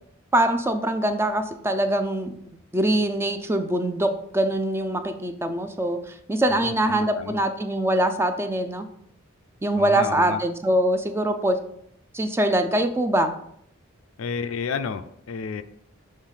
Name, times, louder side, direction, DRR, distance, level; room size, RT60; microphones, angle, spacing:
voice 1, 0.3-2.4 2.7-8.9 9.6-11.6 12.1-13.3, right 1 dB, 10° right, 8 dB, 0.4 m, -23 dB
voice 2, 6.5-7.4 9.7-10.4 14.2-15.6, left 5 dB, 65° left, 10 dB, 0.4 m, -31 dB
6.5 x 3.2 x 5.4 m, 0.71 s
head